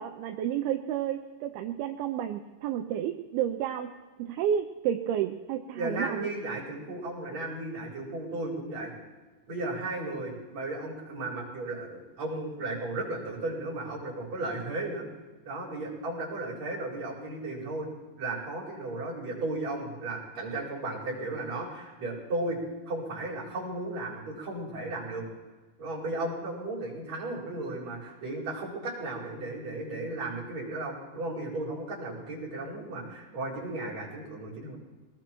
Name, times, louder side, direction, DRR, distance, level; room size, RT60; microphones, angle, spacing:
voice 1, 0.0-3.9 4.2-6.3, right 10 dB, 85° right, 6 dB, 2.6 m, -31 dB
voice 2, 5.7-8.9 9.5-15.1 15.4-17.9 18.2-22.6 22.9-25.2 25.8-34.8, right 2 dB, 45° right, -7 dB, 5.9 m, -35 dB
24.5 x 19.0 x 3.1 m, 1.4 s
omnidirectional pair, 4.4 m